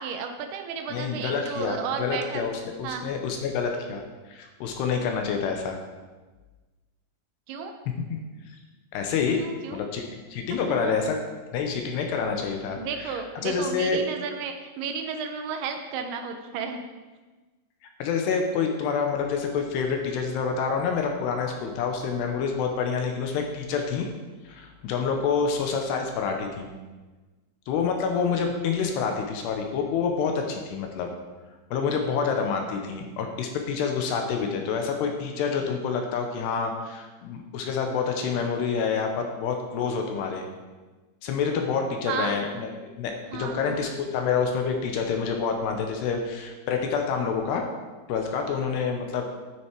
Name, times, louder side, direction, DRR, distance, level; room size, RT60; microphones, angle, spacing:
voice 1, 0.0-2.4 2.8-3.1 5.1-5.2 7.5-7.7 9.4-9.8 10.7-10.9 12.8-16.8 42.1-42.4 43.3-43.8, right 6 dB, 80° right, 5 dB, 2.3 m, -33 dB
voice 2, 0.9-4.0 4.3-5.8 8.1-8.2 8.9-9.4 9.7-10.0 10.3-11.2 11.5-14.0 18.0-24.1 24.4-26.7 27.7-31.1 31.7-40.5 41.2-42.7 43.0-47.7 48.1-49.3, left 5 dB, 75° left, 3 dB, 2.7 m, -27 dB
9.8 x 8.8 x 4.6 m, 1.3 s
omnidirectional pair, 5.3 m